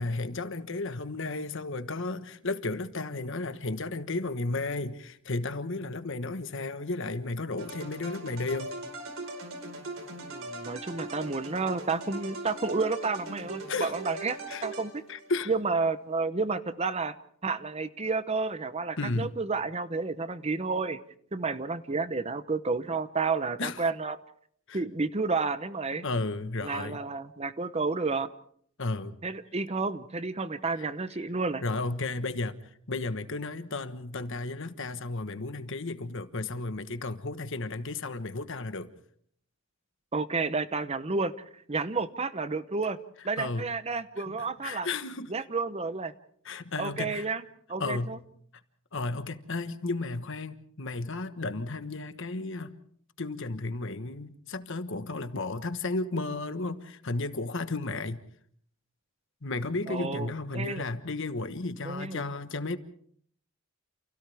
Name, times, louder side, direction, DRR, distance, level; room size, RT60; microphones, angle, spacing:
voice 1, 0.0-8.7 13.7-13.9 14.5-14.6 15.1-15.5 19.0-19.3 23.6-23.8 24.7-24.8 26.0-27.0 28.8-29.2 30.8-30.9 31.6-32.6 32.9-38.9 43.4-43.7 44.2-45.3 46.4-47.3 47.8-48.2 48.9-52.7 53.2-58.2 59.4-62.8, left 3 dB, 60° left, 1.3 m, -33 dB
sound 1, 7.6-15.3, right 2 dB, 70° right, 4.7 m, -40 dB
voice 2, 10.3-15.0 15.5-17.2 17.4-21.0 21.3-24.2 24.7-26.0 26.6-28.3 29.2-31.6 40.1-41.3 41.7-43.0 43.2-44.9 45.3-46.1 46.8-47.4 47.7-48.2 59.9-60.8 61.8-62.2, right 4 dB, 30° right, 0.8 m, -31 dB
30.0 x 28.5 x 3.5 m
head